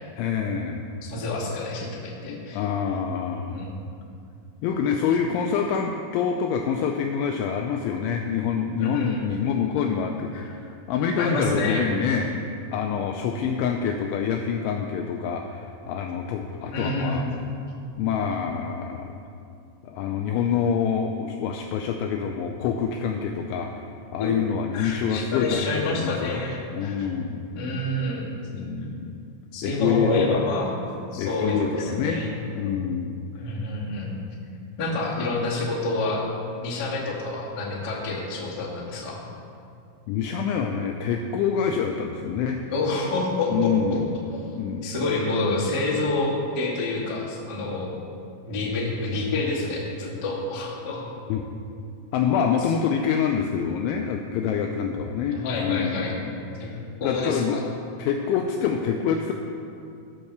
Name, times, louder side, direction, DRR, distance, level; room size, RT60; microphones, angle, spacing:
voice 1, 0.2-0.9 2.3-3.7 4.6-12.3 12.7-17.3 18.0-19.2 19.8-26.4 26.7-27.4 28.5-29.2 29.6-30.4 31.2-32.2 32.5-33.2 40.1-42.6 42.9-43.1 43.5-44.2 44.6-44.9 51.3-51.5 52.1-56.3 56.6-57.6 58.0-59.3, left 7 dB, 85° left, 3 dB, 2.7 m, -26 dB
voice 2, 1.0-2.6 3.5-3.8 8.8-9.4 11.2-11.9 16.7-17.5 24.2-24.4 24.7-27.1 27.5-28.2 29.5-30.7 31.1-32.3 33.4-34.1 34.8-36.2 36.6-39.2 42.7-43.7 44.3-46.3 46.5-47.9 48.4-51.0 55.3-56.1 56.6-56.7 57.0-57.6, left 2 dB, 60° left, -6 dB, 1.0 m, -28 dB
14.0 x 5.7 x 6.7 m, 2.5 s
omnidirectional pair, 6.0 m